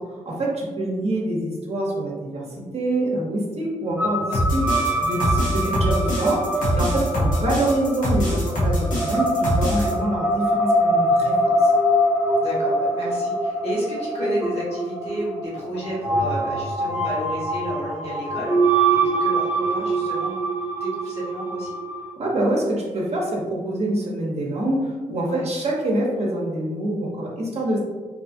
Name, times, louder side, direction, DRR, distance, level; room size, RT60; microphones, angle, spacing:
voice 1, 0.0-2.5 2.7-4.7 5.0-11.3 11.6-11.7 22.2-27.8, right 1 dB, 50° right, -2 dB, 0.8 m, -25 dB
sound 1, 4.0-22.1, right 1 dB, 15° right, 0.7 m, -24 dB
sound 2, 4.3-9.9, equal, 85° left, 0.8 m, -23 dB
voice 2, 5.2-5.7 9.7-9.9 12.4-20.4 20.8-21.7 25.2-25.5, equal, 50° left, -5 dB, 1.2 m, -31 dB
2.7 x 2.4 x 2.7 m, 1.3 s
cardioid pair, 75°, 13 cm